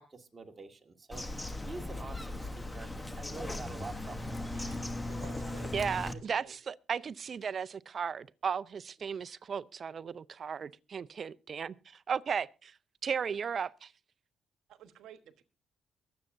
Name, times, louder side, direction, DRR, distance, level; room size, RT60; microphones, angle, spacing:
voice 1, 0.0-4.5, right 3 dB, 30° right, 1.9 m, -47 dB
Bird vocalization bird call bird song, 1.1-6.1, left 2 dB, 15° left, 1.0 m, -38 dB
sound 1, 1.6-5.3, left 1 dB, 50° left, 5.0 m, -62 dB
Race car auto racing, 2.2-6.3, left 1 dB, 5° right, 2.2 m, -52 dB
voice 2, 5.1-5.7 6.0-6.5 14.7-15.4, right 9 dB, 80° right, 1.2 m, -52 dB
voice 3, 5.7-12.7 13.0-13.9, right 6 dB, 50° right, 0.5 m, -35 dB
23.0 x 7.9 x 2.6 m
cardioid pair, 90°, 0 cm